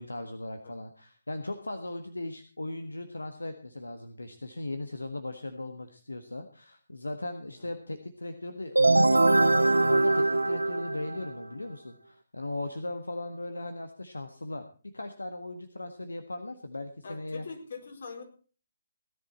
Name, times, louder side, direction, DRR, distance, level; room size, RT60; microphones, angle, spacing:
voice 1, 0.0-17.4, left 2 dB, 80° left, 7 dB, 1.5 m, -38 dB
sound 1, 8.7-11.4, right 2 dB, 85° right, 1.0 m, -22 dB
voice 2, 17.0-18.2, left 5 dB, 55° left, 3 dB, 4.6 m, -43 dB
17.5 x 11.0 x 4.2 m, 0.38 s
figure-of-eight pair, 145°, 0 cm